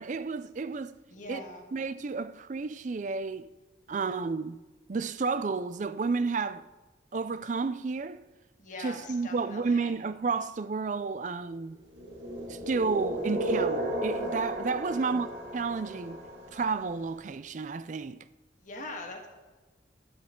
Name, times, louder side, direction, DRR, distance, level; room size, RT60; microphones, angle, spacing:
voice 1, 0.0-1.0 1.3-1.4 1.7-3.5 3.9-4.6 4.9-6.7 7.1-8.2 8.8-11.8 12.5-16.2 16.5-18.2, right 4 dB, 40° right, 0.4 m, -31 dB
voice 2, 1.1-1.7 8.6-9.9 14.8-15.2 18.6-19.3, left 2 dB, 45° left, 1.7 m, -42 dB
sound 1, 11.9-16.9, right 1 dB, 75° right, 1.9 m, -34 dB
12.5 x 11.0 x 3.8 m
head